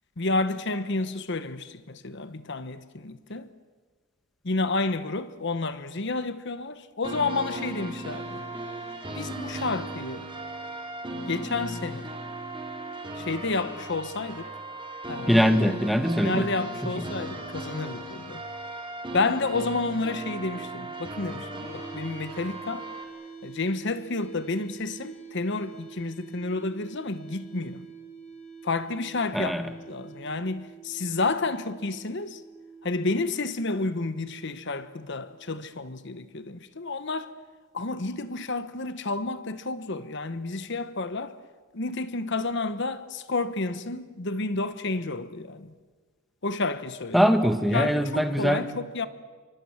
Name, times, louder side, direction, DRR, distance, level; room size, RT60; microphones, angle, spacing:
voice 1, 0.2-3.5 4.4-8.4 9.1-10.2 11.3-12.1 13.2-14.5 15.1-15.3 16.2-18.4 19.1-22.9 23.4-27.9 28.6-29.5 29.9-32.4 32.8-37.3 37.7-41.3 41.7-45.7 46.4-47.3 47.7-49.1, left 3 dB, 55° left, 1.0 m, -30 dB
sound 1, 7.0-23.0, right 1 dB, 25° right, 3.7 m, -37 dB
voice 2, 15.3-16.5 17.0-17.1 29.3-29.7 47.1-48.6, equal, ahead, 1.4 m, -22 dB
sound 2, 21.6-35.6, right 5 dB, 30° left, 4.6 m, -46 dB
29.0 x 24.5 x 7.4 m
head